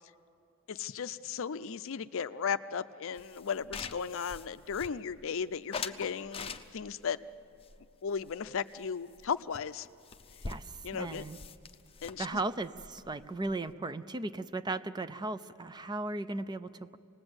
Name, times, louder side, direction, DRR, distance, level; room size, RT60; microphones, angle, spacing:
voice 1, 0.7-7.2 8.0-9.9 10.8-11.2 12.0-12.3, left 6 dB, 65° left, 13 dB, 0.5 m, -36 dB
sound 1, 3.2-5.3 5.7-7.0 7.6-8.8 9.1-9.3 9.5-9.6 9.8-13.7, left 5 dB, 25° left, 0.7 m, -44 dB
voice 2, 10.5-11.4 12.2-17.0, right 2 dB, 20° right, 13 dB, 0.5 m, -36 dB
27.0 x 19.5 x 8.0 m, 2.5 s
head